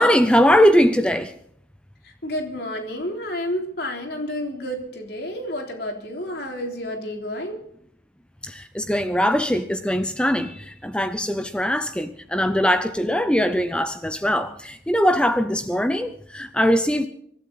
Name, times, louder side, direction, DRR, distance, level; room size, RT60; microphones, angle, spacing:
voice 1, 0.0-1.3 8.4-17.1, equal, 5° left, 9 dB, 0.6 m, -21 dB
voice 2, 2.0-7.6, left 1 dB, 55° left, 2 dB, 3.5 m, -30 dB
25.0 x 12.0 x 4.1 m, 0.69 s
head